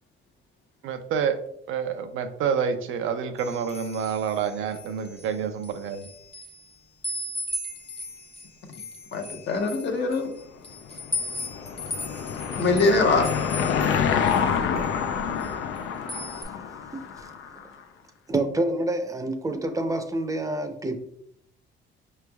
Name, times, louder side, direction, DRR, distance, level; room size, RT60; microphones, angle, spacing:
voice 1, 0.8-1.4 1.7-6.1, right 7 dB, 85° right, 7 dB, 0.5 m, -28 dB
sound 1, 3.4-5.3 5.6-6.7 7.0-14.5 14.8-15.8 16.1-16.4, left 1 dB, 30° left, 0.7 m, -37 dB
voice 2, 9.1-10.3 12.6-13.4, left 3 dB, 60° left, 4 dB, 0.8 m, -23 dB
Car passing by / Engine, 10.8-17.6, left 7 dB, 85° left, 0.4 m, -27 dB
voice 3, 16.9-17.3 18.3-21.0, right 2 dB, 15° right, 7 dB, 0.5 m, -28 dB
5.0 x 3.2 x 2.3 m, 0.72 s
cardioid pair, 90°, 20 cm